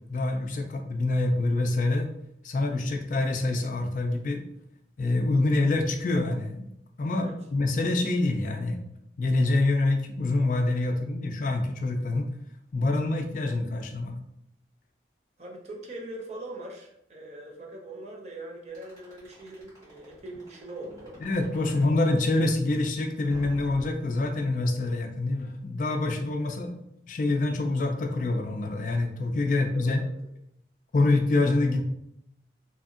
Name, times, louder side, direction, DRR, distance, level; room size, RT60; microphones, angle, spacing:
voice 1, 0.0-2.1 2.4-4.4 5.0-6.7 7.0-8.8 9.2-12.3 12.7-14.2 21.2-26.7 27.1-30.0 30.9-31.8, left 2 dB, 45° left, 4 dB, 0.3 m, -26 dB
voice 2, 15.4-21.2 21.5-21.8 26.4-26.7 29.5-30.1, right 1 dB, 40° right, 0 dB, 0.5 m, -42 dB
sound 1, 18.7-22.0 23.3-24.7, equal, 20° right, 1.4 m, -46 dB
2.7 x 2.6 x 2.4 m, 0.78 s
head